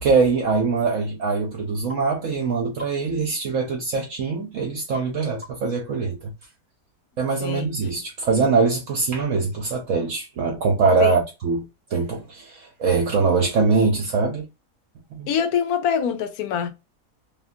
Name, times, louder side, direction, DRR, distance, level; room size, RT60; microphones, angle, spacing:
voice 1, 0.0-6.3 7.2-14.5 15.1-15.3, right 4 dB, 65° right, 1.0 m, -23 dB
sound 1, 1.9-2.1 2.8-3.0 4.9-5.2 5.4-5.7, left 2 dB, 25° right, 1.0 m, -39 dB
voice 2, 15.3-16.7, left 8 dB, 75° left, 1.1 m, -24 dB
2.9 x 2.5 x 2.4 m
omnidirectional pair, 1.6 m